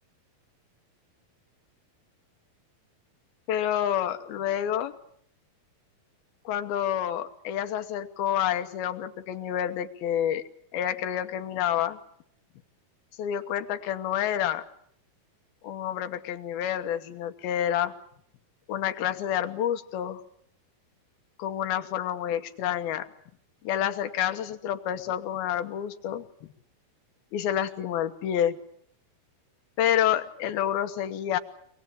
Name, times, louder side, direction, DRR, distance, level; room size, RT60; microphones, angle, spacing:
voice 1, 3.5-4.9 6.5-10.4 10.7-12.0 13.2-14.6 15.6-17.9 18.7-20.2 21.4-23.1 23.6-26.5 27.3-28.6 29.8-31.4, left 10 dB, 80° left, 9 dB, 3.1 m, -28 dB
24.0 x 20.5 x 8.7 m, 0.67 s
omnidirectional pair, 4.3 m